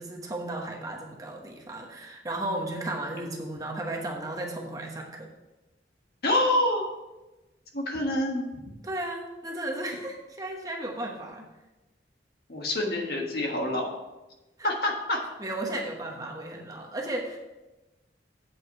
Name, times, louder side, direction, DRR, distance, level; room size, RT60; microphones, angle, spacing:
voice 1, 0.0-5.3 8.8-11.5 14.6-14.7 15.4-17.4, right 1 dB, 20° right, 0 dB, 1.0 m, -34 dB
voice 2, 6.2-6.9 7.7-8.4 12.5-13.9 14.6-15.2, left 1 dB, 60° left, 0 dB, 1.5 m, -26 dB
8.0 x 5.1 x 6.2 m, 1.1 s
head